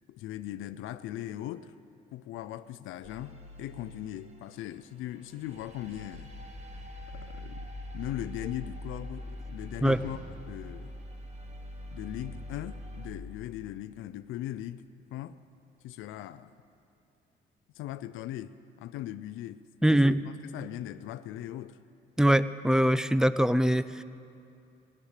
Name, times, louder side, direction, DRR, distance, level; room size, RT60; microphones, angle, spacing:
voice 1, 0.1-1.8 2.1-6.3 7.1-7.7 7.9-10.2 10.5-11.0 11.9-14.8 15.1-15.4 15.8-16.5 17.7-21.8, left 13 dB, 90° left, 12 dB, 0.5 m, -39 dB
sound 1, 3.0-4.8 5.4-13.1, left 1 dB, 35° right, 1.5 m, -43 dB
sound 2, 9.8-16.3 16.6-16.8, equal, 70° right, 3.9 m, -53 dB
voice 2, 19.8-20.2 22.2-24.0, right 1 dB, 5° right, 15 dB, 0.4 m, -23 dB
16.5 x 11.5 x 6.6 m, 2.6 s
cardioid pair, 90°, 20 cm